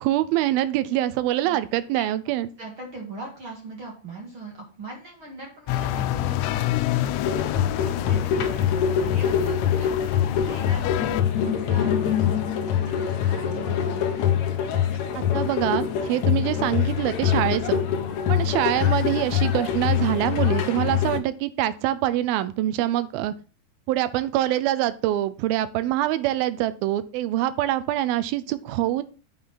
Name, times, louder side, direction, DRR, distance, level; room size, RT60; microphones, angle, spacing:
voice 1, 0.0-2.5 15.2-17.8 18.3-23.3 23.9-29.0, right 13 dB, 80° right, 14 dB, 2.3 m, -25 dB
voice 2, 2.6-11.2 11.4-12.4 12.7-14.3 18.3-18.6, right 2 dB, 40° right, 0 dB, 2.0 m, -41 dB
sound 1, 5.7-11.2, left 15 dB, 90° left, 2.7 m, -28 dB
sound 2, 7.2-21.2, left 9 dB, 70° left, 1.7 m, -24 dB
8.6 x 5.7 x 5.7 m, 0.37 s
omnidirectional pair, 4.7 m